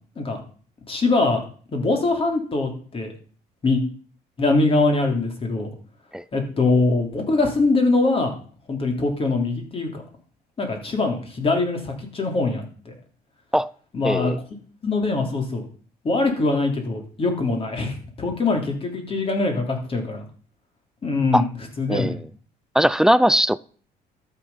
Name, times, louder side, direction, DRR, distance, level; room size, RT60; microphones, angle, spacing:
voice 1, 0.9-1.4 1.7-3.1 3.6-3.8 4.4-5.7 6.3-8.3 8.7-10.0 10.6-12.9 13.9-14.3 14.8-15.6 16.0-20.2 21.0-21.5 21.8-22.2, left 3 dB, 35° left, 3.4 m, -22 dB
voice 2, 14.0-14.4 21.3-21.4 21.9-22.2 22.7-23.6, equal, 5° right, 0.4 m, -19 dB
12.5 x 6.8 x 5.6 m
cardioid pair, 110°, 17 cm